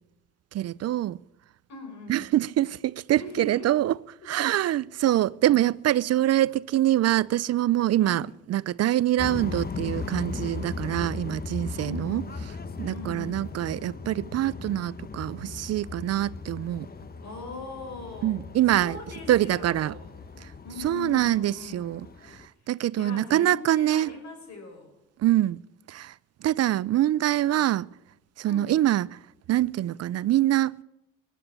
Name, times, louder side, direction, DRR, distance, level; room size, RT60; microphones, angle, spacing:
voice 1, 0.5-1.2 2.1-4.0 4.3-12.2 12.8-16.9 18.2-19.0 19.3-19.9 20.4-20.5 20.8-22.0 22.3-22.4 22.7-24.1 25.2-25.6 25.9-26.1 26.4-27.9 28.4-29.1 29.5-30.8, right 13 dB, 55° right, 0.5 m, -24 dB
voice 2, 1.7-2.3 3.2-3.7 4.2-4.7 8.0-8.3 11.7-12.3 12.9-13.5 17.2-18.4 18.7-20.2 20.6-21.9 22.9-24.9 28.4-28.8, left 3 dB, 65° left, 5.3 m, -41 dB
sound 1, 9.2-22.5, left 4 dB, 30° left, 1.0 m, -38 dB
16.0 x 10.0 x 8.7 m
cardioid pair, 90°, 30 cm